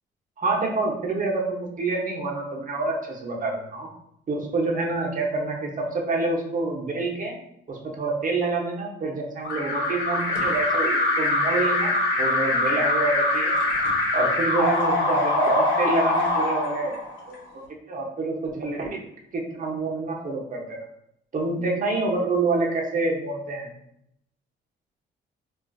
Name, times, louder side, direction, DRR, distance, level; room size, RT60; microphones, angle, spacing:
voice 1, 0.4-3.9 4.3-7.3 7.7-13.5 14.1-17.0 17.3-17.4 17.9-18.9 19.3-20.6 21.3-23.7, right 3 dB, 40° right, -1 dB, 0.8 m, -27 dB
Alarm, 9.4-17.3, left 2 dB, 70° left, 1.0 m, -23 dB
3.7 x 2.4 x 2.3 m, 0.77 s
cardioid pair, 90°, 20 cm